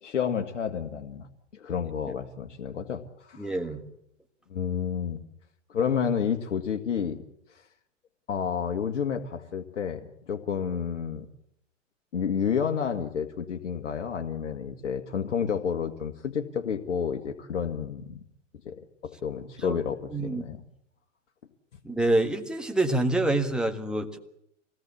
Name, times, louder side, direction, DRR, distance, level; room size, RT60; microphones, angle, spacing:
voice 1, 0.0-1.3 1.5-3.7 4.5-5.2 5.7-7.2 8.3-11.3 12.1-18.2 18.7-18.8 19.0-20.6, left 7 dB, 75° left, 5 dB, 2.0 m, -30 dB
voice 2, 3.4-3.8 19.6-19.8 20.1-20.4 21.8-24.2, right 2 dB, ahead, 4 dB, 1.7 m, -26 dB
26.0 x 18.0 x 8.5 m, 0.75 s
hypercardioid pair, 130°, 38 cm